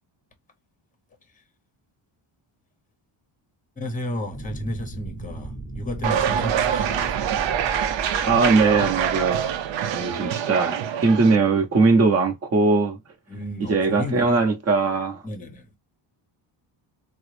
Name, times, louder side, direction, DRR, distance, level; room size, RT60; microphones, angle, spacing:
voice 1, 3.8-7.4 10.0-10.3 13.3-14.5 15.2-15.7, left 1 dB, 15° left, 0.8 m, -33 dB
sound 1, 4.3-10.1, right 3 dB, 10° right, 1.0 m, -36 dB
sound 2, 6.0-11.4, right 9 dB, 65° right, 0.6 m, -25 dB
voice 2, 8.2-9.6 9.9-13.0 13.7-15.2, right 4 dB, 30° right, 0.8 m, -20 dB
3.7 x 2.0 x 3.1 m
cardioid pair, 135°, 48 cm